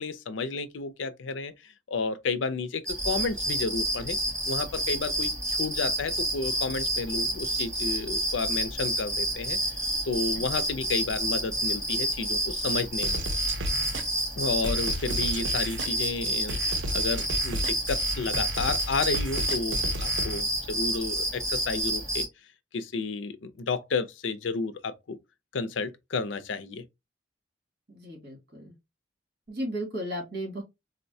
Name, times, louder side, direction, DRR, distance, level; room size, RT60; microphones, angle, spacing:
voice 1, 0.0-4.2 4.5-9.6 10.0-13.2 14.4-16.6 16.9-22.3 22.7-25.2 25.5-26.8, left 4 dB, 90° left, 0.5 m, -32 dB
sound 1, 2.9-22.3, right 1 dB, 15° right, 1.8 m, -29 dB
sound 2, 13.0-20.4, equal, 85° right, 0.7 m, -33 dB
voice 2, 27.9-28.8 29.5-30.6, right 1 dB, 60° right, 1.9 m, -35 dB
3.9 x 2.1 x 2.6 m
head